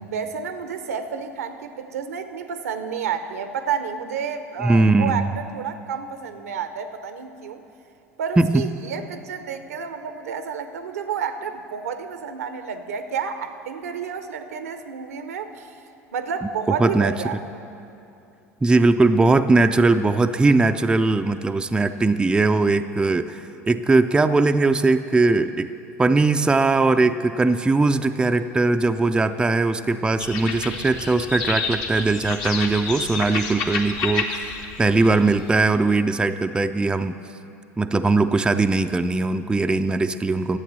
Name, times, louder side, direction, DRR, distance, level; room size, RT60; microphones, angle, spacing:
voice 1, 0.0-5.3 5.5-7.6 8.2-15.8 16.1-17.4, right 6 dB, 75° right, 9 dB, 0.7 m, -30 dB
voice 2, 4.6-5.3 8.4-8.6 16.7-17.1 18.6-23.4 23.7-25.7 26.0-34.5 34.8-37.2 37.8-40.6, right 3 dB, 10° right, 8 dB, 0.4 m, -20 dB
sound 1, 30.2-35.7, left 5 dB, 55° left, 1.1 m, -30 dB
12.0 x 7.9 x 6.7 m, 2.7 s
figure-of-eight pair, 70°, 8 cm